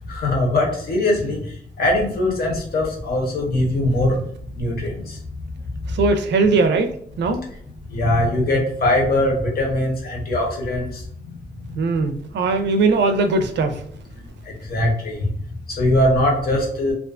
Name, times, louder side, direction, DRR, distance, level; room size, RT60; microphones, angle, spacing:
voice 1, 0.1-1.4 1.8-4.3 4.6-5.2 7.9-11.0 14.5-15.3 15.7-16.9, left 1 dB, 60° left, -1 dB, 0.8 m, -21 dB
voice 2, 5.9-6.9 7.2-7.4 11.8-13.8, right 3 dB, 90° right, 7 dB, 0.4 m, -19 dB
2.4 x 2.2 x 2.4 m, 0.63 s
wide cardioid pair, 165°, 18 cm